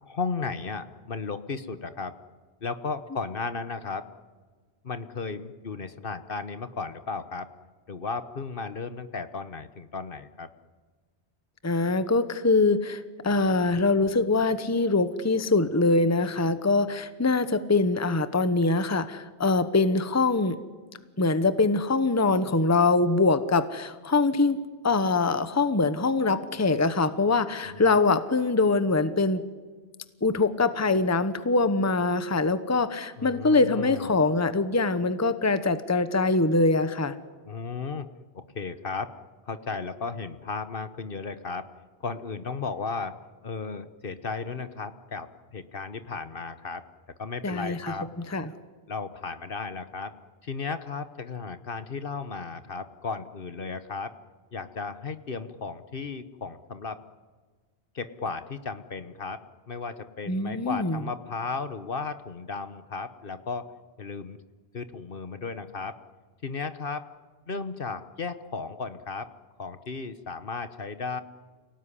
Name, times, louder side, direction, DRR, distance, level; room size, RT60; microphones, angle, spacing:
voice 1, 0.0-2.1 2.6-4.1 4.8-7.5 7.9-10.5 27.6-27.8 33.2-34.2 37.4-38.1 38.3-39.1 39.5-41.7 42.0-43.2 43.4-45.3 45.5-46.8 47.2-48.1 48.9-50.1 50.4-54.1 54.5-57.0 57.9-59.4 59.7-63.7 64.0-64.4 64.7-66.0 66.4-67.0 67.5-69.3 69.6-71.2, left 4 dB, 55° left, 11 dB, 1.3 m, -35 dB
voice 2, 11.6-20.6 21.2-29.4 30.2-37.1 47.4-47.9 48.3-48.5 60.3-61.0, left 3 dB, 15° left, 12 dB, 1.0 m, -23 dB
29.0 x 18.5 x 10.0 m, 1.5 s
omnidirectional pair, 1.2 m